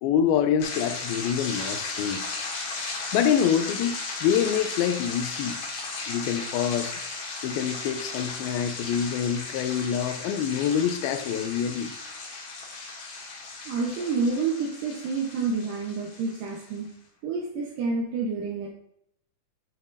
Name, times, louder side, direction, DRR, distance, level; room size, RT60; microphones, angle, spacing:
voice 1, 0.0-2.2 3.1-5.6 6.1-6.9 7.4-11.9, left 8 dB, 80° left, 10 dB, 2.3 m, -26 dB
sound 1, 0.6-16.8, left 3 dB, 60° left, 3.0 m, -36 dB
voice 2, 13.7-16.9 17.2-18.7, right 4 dB, 70° right, -2 dB, 2.3 m, -28 dB
10.5 x 6.4 x 2.6 m, 0.74 s
omnidirectional pair, 4.7 m